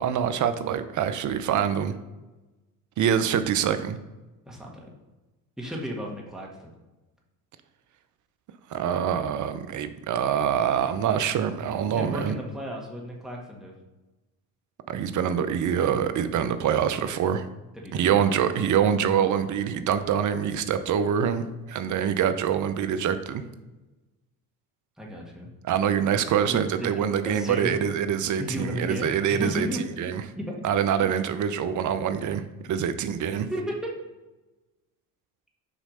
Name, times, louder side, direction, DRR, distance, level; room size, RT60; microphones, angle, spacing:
voice 1, 0.0-1.9 3.0-4.0 8.7-12.4 14.9-17.5 17.9-23.4 25.6-30.2 30.6-32.4 32.7-33.5, right 8 dB, 45° right, 11 dB, 0.7 m, -25 dB
voice 2, 4.4-4.9 5.6-6.7 11.8-13.7 17.7-18.2 25.0-25.5 26.5-27.8 28.4-30.6 33.5-33.9, equal, ahead, -2 dB, 1.6 m, -34 dB
6.3 x 3.2 x 5.5 m, 1.1 s
hypercardioid pair, 70°, 42 cm